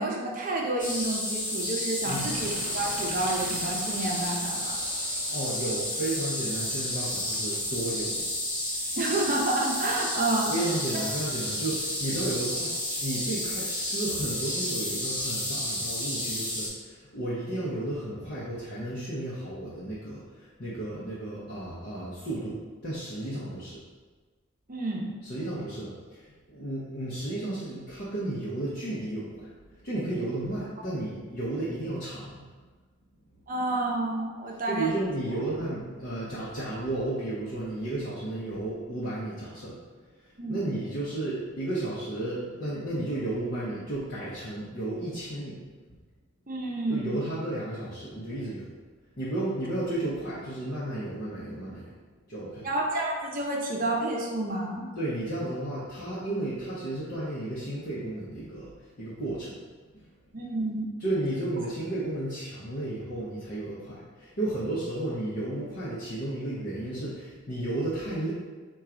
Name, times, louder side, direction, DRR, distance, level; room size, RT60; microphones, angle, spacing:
voice 1, 0.0-4.8 8.9-10.5 10.9-11.0 24.7-25.1 33.5-34.9 40.4-40.6 46.5-47.1 52.6-54.9 60.3-60.9, right 2 dB, 40° right, -1 dB, 0.6 m, -29 dB
sound 1, 0.8-16.7, left 1 dB, 20° left, 1.1 m, -31 dB
voice 2, 2.0-2.3 5.3-8.2 10.5-12.8 13.0-23.8 25.2-29.5 29.8-32.4 34.6-39.8 40.2-45.6 45.9-46.0 46.9-48.6 49.2-51.8 52.3-52.7 55.0-58.7 59.0-59.5 59.9-60.0 61.0-68.3, right 1 dB, 45° left, -9 dB, 0.7 m, -33 dB
sound 2, 2.1-7.8, right 3 dB, 85° right, 0.4 m, -44 dB
4.4 x 2.3 x 3.7 m, 1.4 s
head